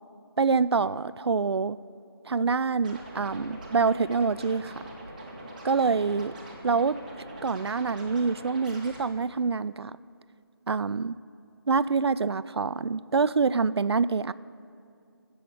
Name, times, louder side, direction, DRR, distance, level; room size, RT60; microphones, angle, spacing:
voice 1, 0.4-1.8 2.3-4.7 5.6-6.3 6.6-7.0 7.4-9.9 10.7-11.2 11.7-14.3, right 4 dB, 90° right, 17 dB, 0.4 m, -26 dB
Scratching (performance technique), 2.8-9.0, right 1 dB, 20° right, 1.3 m, -43 dB
13.0 x 7.8 x 7.4 m, 2.5 s
figure-of-eight pair, 175°, 13 cm